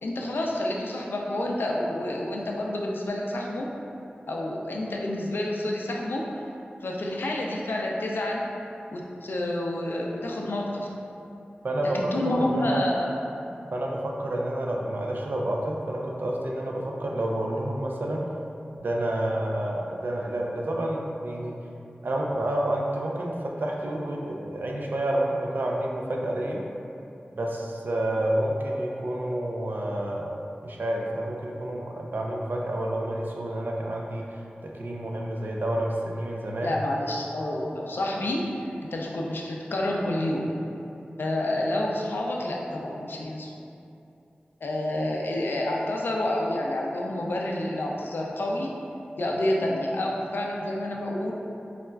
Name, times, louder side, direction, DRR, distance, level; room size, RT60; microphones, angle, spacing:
voice 1, 0.0-3.7 4.3-6.4 6.8-8.5 8.9-10.9 11.9-13.1 36.6-38.5 38.9-40.5 41.2-43.5 44.6-48.7 49.2-51.3, left 1 dB, 80° left, -2 dB, 0.4 m, -29 dB
voice 2, 11.6-12.8 13.7-18.3 18.8-21.5 22.0-26.6 27.3-30.3 30.6-34.3 34.6-36.8, right 1 dB, 65° right, -1 dB, 0.4 m, -29 dB
4.1 x 2.3 x 2.2 m, 2.7 s
wide cardioid pair, 70°, 4 cm